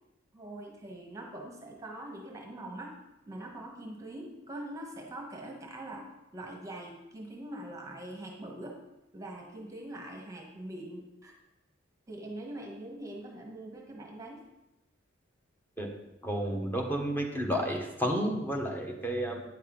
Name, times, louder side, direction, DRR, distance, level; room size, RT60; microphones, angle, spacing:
voice 1, 0.3-2.9 3.3-6.0 6.3-8.8 9.1-11.3 12.1-14.4, right 1 dB, 15° right, 0 dB, 1.1 m, -43 dB
voice 2, 16.2-19.4, equal, 10° left, 1 dB, 1.1 m, -31 dB
9.4 x 6.6 x 3.8 m, 0.94 s
head